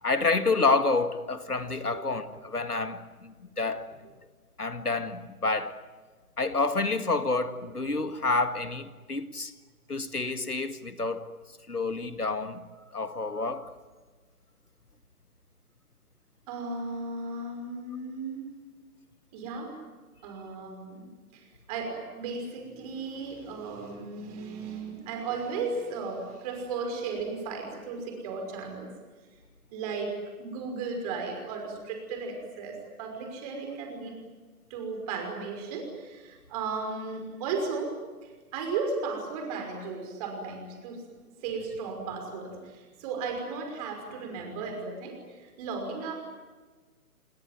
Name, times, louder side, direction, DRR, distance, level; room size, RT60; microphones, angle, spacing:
voice 1, 0.0-3.9 4.6-5.8 6.4-9.5 9.9-11.3 11.7-12.7 12.9-13.7, left 3 dB, 80° left, 2.0 m, -28 dB
voice 2, 1.8-2.2 16.5-18.6 19.3-19.8 20.2-28.9 29.7-34.1 34.7-38.0 38.2-41.1 41.4-46.1, right 4 dB, 25° right, 5.7 m, -35 dB
29.0 x 19.5 x 9.4 m
figure-of-eight pair, 135°, 45 cm